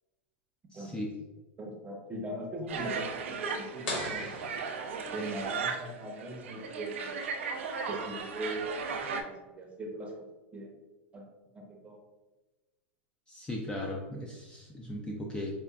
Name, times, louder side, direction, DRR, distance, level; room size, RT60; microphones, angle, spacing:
voice 1, 0.7-1.1 13.3-15.6, left 1 dB, 15° left, -1 dB, 0.4 m, -37 dB
voice 2, 1.6-4.3 5.1-7.2 7.9-8.7 9.2-10.1 10.5-10.7 11.1-11.2 11.5-12.0, right 1 dB, 20° right, 1 dB, 0.7 m, -40 dB
sound 1, 2.7-9.2, right 5 dB, 85° right, 0.4 m, -36 dB
sound 2, 3.9-5.5, left 1 dB, 70° left, 1.3 m, -39 dB
4.8 x 2.4 x 2.3 m, 1.2 s
supercardioid pair, 130°, 7 cm